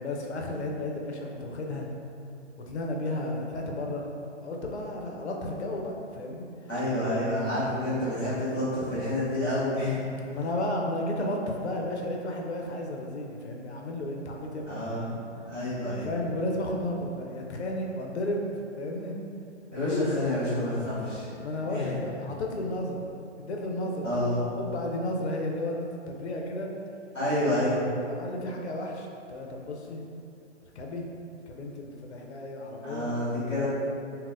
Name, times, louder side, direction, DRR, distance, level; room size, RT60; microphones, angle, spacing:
voice 1, 0.0-1.9 2.7-4.1 4.4-6.5 10.3-15.1 16.0-18.5 18.8-19.2 19.7-20.1 21.4-23.0 23.4-24.3 24.5-26.7 28.0-30.0 30.7-31.1 31.5-33.1, left 1 dB, 65° left, 0 dB, 0.5 m, -33 dB
voice 2, 6.7-10.0 14.7-15.2 15.4-16.1 19.7-21.3 21.7-22.0 24.0-24.4 27.1-27.8 32.8-33.7, left 1 dB, 5° right, -21 dB, 0.9 m, -29 dB
4.0 x 2.1 x 2.5 m, 2.6 s
hypercardioid pair, 170°, 36 cm